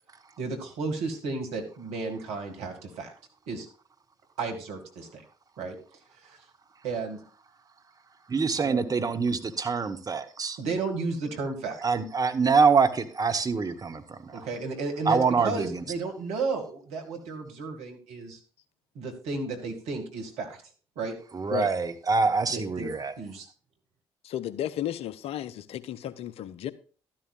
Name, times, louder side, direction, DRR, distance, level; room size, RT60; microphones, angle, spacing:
voice 1, 0.4-3.1 3.5-3.7 4.4-5.2 5.6-5.8 6.2-6.4 6.8-7.2 8.6-8.9 10.6-11.8 14.3-15.2 15.4-18.4 19.0-20.5 21.0-21.1 22.5-22.9 23.2-23.5, right 4 dB, 70° right, 2.2 m, -33 dB
voice 2, 8.3-10.6 11.8-14.5 15.1-15.8 21.3-23.1, right 5 dB, 35° right, 1.2 m, -25 dB
voice 3, 24.2-26.7, left 11 dB, 60° left, 0.7 m, -33 dB
12.5 x 12.0 x 2.5 m
hypercardioid pair, 45°, 11 cm